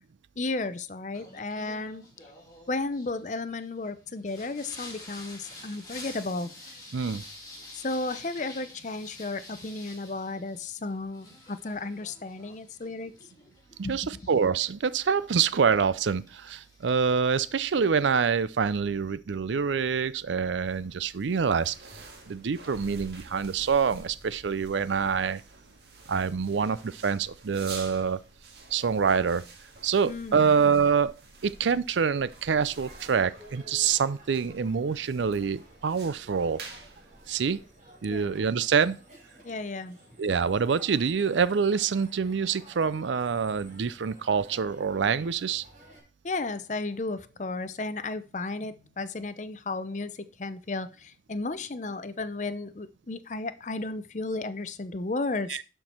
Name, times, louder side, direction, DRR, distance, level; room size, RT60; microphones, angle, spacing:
voice 1, 0.4-2.1 2.7-6.5 7.7-13.1 13.8-14.0 30.1-30.5 38.1-38.4 39.4-40.0 46.2-55.6, left 3 dB, 40° left, 0.6 m, -34 dB
Singing, 1.1-18.1, left 2 dB, 20° left, 2.9 m, -49 dB
voice 2, 6.9-7.2 13.9-22.0 22.3-25.4 26.1-28.2 28.7-29.5 29.8-31.2 31.4-36.6 37.3-37.6 38.0-39.0 40.2-45.6 55.5-55.6, right 6 dB, 85° right, 0.5 m, -26 dB
sound 1, 20.1-38.0, right 3 dB, 60° right, 1.8 m, -49 dB
Crowd, 32.6-46.0, right 1 dB, 40° right, 3.6 m, -54 dB
11.5 x 4.6 x 4.3 m
head